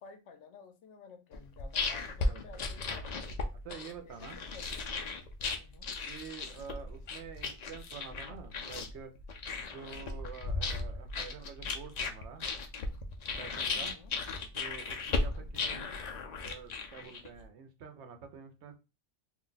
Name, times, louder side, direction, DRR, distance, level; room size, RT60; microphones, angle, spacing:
voice 1, 0.0-3.5 4.1-5.1 5.6-5.9 13.7-14.2 15.2-15.5, left 5 dB, 80° left, 7 dB, 0.9 m, -54 dB
sound 1, 1.3-17.4, left 3 dB, 55° left, 0.4 m, -36 dB
voice 2, 2.0-2.7 3.6-4.4 6.1-9.1 9.7-12.5 13.3-13.9 14.5-15.9 16.4-18.8, right 6 dB, 75° right, 7 dB, 0.9 m, -48 dB
2.5 x 2.2 x 3.8 m, 0.28 s
omnidirectional pair, 1.2 m